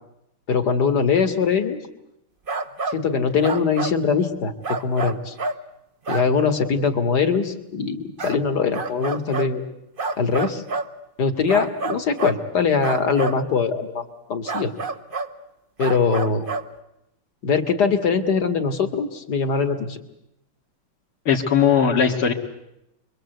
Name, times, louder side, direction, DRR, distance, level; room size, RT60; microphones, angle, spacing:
voice 1, 0.5-1.8 2.9-4.5 4.8-5.3 6.1-9.6 10.2-10.6 11.2-14.0 14.3-14.7 15.8-16.5 17.4-20.0, left 5 dB, 50° left, 7 dB, 2.5 m, -22 dB
sound 1, 2.5-3.0 3.4-4.0 4.6-5.6 6.1-6.3 8.2-8.4 8.7-9.5 10.0-10.9 11.5-12.4 12.8-13.4 14.5-15.3 15.8-16.7, right 3 dB, 35° right, 0.9 m, -28 dB
voice 2, 21.3-22.3, left 7 dB, 85° left, 0 dB, 2.9 m, -18 dB
29.0 x 23.0 x 8.0 m, 0.86 s
omnidirectional pair, 2.3 m